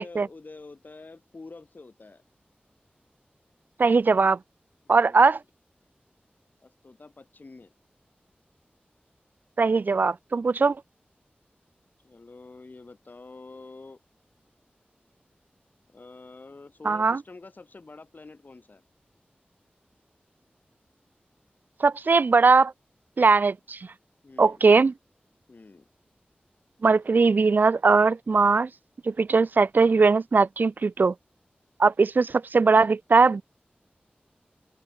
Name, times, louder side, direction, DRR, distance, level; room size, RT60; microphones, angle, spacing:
voice 1, 0.0-2.2 4.8-5.3 6.6-7.7 12.0-14.0 15.9-18.8 24.2-24.6 25.5-25.9, left 3 dB, 55° left, 4.6 m, -47 dB
voice 2, 3.8-4.4 4.9-5.4 9.6-10.8 16.8-17.2 21.8-22.7 23.2-23.8 24.4-24.9 26.8-28.7 29.1-31.1 31.8-33.4, right 4 dB, 60° right, 0.3 m, -20 dB
open air
wide cardioid pair, 85°, 4 cm